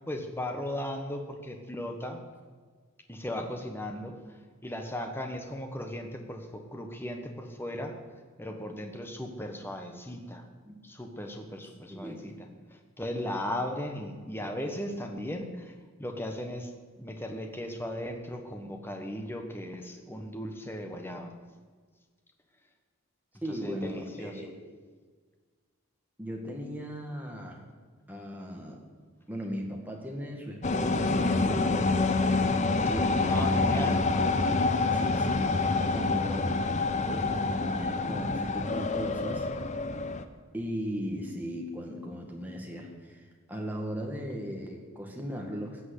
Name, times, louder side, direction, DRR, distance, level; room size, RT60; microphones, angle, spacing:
voice 1, 0.1-2.2 3.1-4.4 4.6-8.0 8.4-10.5 10.8-12.3 12.7-16.7 17.0-21.3 23.5-24.4 33.1-34.0, left 1 dB, 10° left, 4 dB, 1.2 m, -37 dB
voice 2, 11.9-12.4 23.4-24.5 26.2-27.6 28.1-28.8 29.3-32.1 32.9-34.5 34.9-39.5 40.5-43.2 43.5-45.8, equal, 10° right, 0 dB, 1.9 m, -37 dB
sound 1, 30.6-40.2, left 3 dB, 35° left, 0.7 m, -27 dB
16.5 x 6.1 x 8.3 m, 1.5 s
head